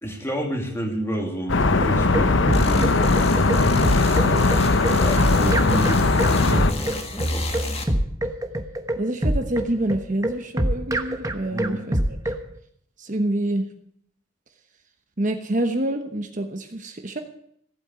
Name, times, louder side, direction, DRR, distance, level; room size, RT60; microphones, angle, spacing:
voice 1, 0.0-2.9 5.0-7.5 11.5-11.8, right 1 dB, 15° left, 2 dB, 2.4 m, -29 dB
sound 1, 1.5-6.7, left 3 dB, 60° left, 0.8 m, -19 dB
sound 2, 1.8-12.4, right 1 dB, 15° right, 1.1 m, -25 dB
sound 3, 2.5-7.8, left 1 dB, 30° left, 1.7 m, -30 dB
voice 2, 9.0-12.2 13.0-13.6 15.2-17.2, right 1 dB, 40° right, 6 dB, 1.1 m, -27 dB
15.0 x 8.7 x 7.8 m, 0.68 s
head